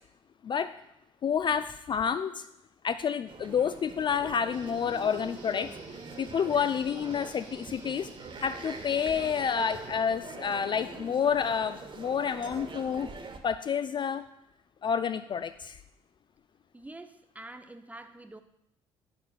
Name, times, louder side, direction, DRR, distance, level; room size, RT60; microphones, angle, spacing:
voice 1, 1.2-2.5 2.8-5.8 6.2-8.1 8.4-13.1 13.4-14.2 14.8-15.8, left 7 dB, 30° left, 11 dB, 0.3 m, -29 dB
sound 1, 3.3-13.4, right 4 dB, 35° right, 0.9 m, -44 dB
sound 2, 4.5-9.9, right 3 dB, 65° right, 1.2 m, -54 dB
voice 2, 16.7-18.4, right 2 dB, 10° right, 9 dB, 0.6 m, -46 dB
9.2 x 6.6 x 2.4 m, 0.81 s
figure-of-eight pair, 50°, 15 cm